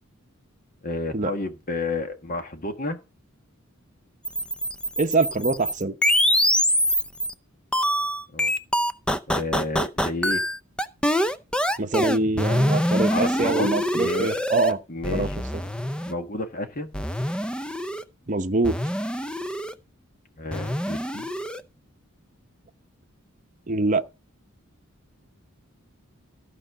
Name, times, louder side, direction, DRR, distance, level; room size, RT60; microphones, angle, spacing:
voice 1, 0.8-3.0 8.3-8.5 9.3-10.4 12.9-14.4 14.9-15.3 16.1-16.9 20.4-21.3, left 2 dB, 40° left, 1.5 m, -31 dB
sound 1, 4.3-7.3 7.7-14.7 15.0-16.1 16.9-18.0 18.6-19.7 20.5-21.6, equal, 5° left, 0.6 m, -24 dB
voice 2, 5.0-5.9 11.8-14.8 15.1-15.3 18.3-18.8 23.7-24.0, right 3 dB, 35° right, 0.8 m, -24 dB
14.5 x 5.1 x 6.1 m
head